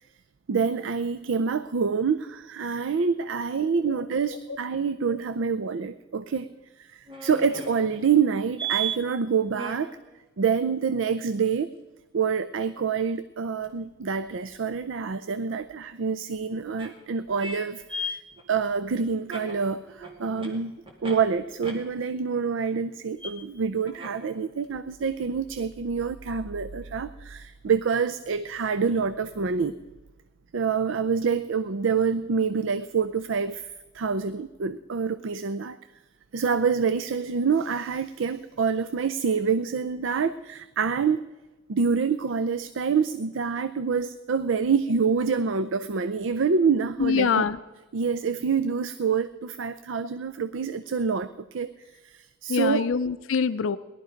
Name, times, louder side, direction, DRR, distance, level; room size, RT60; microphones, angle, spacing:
voice 1, 0.5-6.5 6.8-10.0 10.4-11.7 12.1-18.2 18.5-20.8 21.0-29.7 30.5-33.7 33.9-35.8 36.3-41.2 41.7-47.4 47.9-51.7 52.0-52.9, right 5 dB, 75° right, 13 dB, 0.5 m, -26 dB
sound 1, 7.1-9.0 9.5-9.8 13.6-13.7 15.3-15.4 16.7-16.9 17.4-17.6 17.9-21.2 21.6-21.7 23.2-23.3 23.8-24.3 24.6-24.7, right 4 dB, 30° right, 2.3 m, -35 dB
voice 2, 47.0-47.6 52.5-53.8, left 6 dB, 80° left, 12 dB, 0.5 m, -24 dB
18.5 x 11.5 x 5.1 m, 1.1 s
head